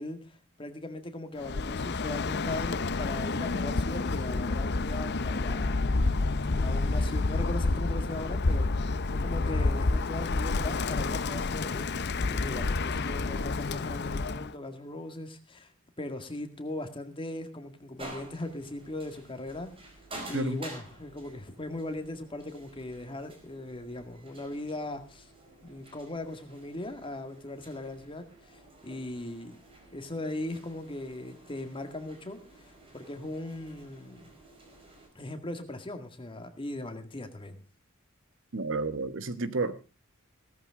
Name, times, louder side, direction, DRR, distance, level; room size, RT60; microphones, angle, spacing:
voice 1, 0.0-6.0 6.4-8.9 9.2-11.9 12.3-15.7 16.0-20.0 20.3-25.3 25.6-29.6 29.9-34.4 35.1-37.6, left 1 dB, 25° left, 2.0 m, -39 dB
Bird, 1.4-14.5, left 3 dB, 50° left, 0.7 m, -29 dB
sound 1, 18.0-35.1, right 2 dB, 25° right, 4.8 m, -50 dB
voice 2, 38.5-39.8, right 2 dB, 60° right, 1.2 m, -31 dB
17.0 x 14.0 x 3.7 m
head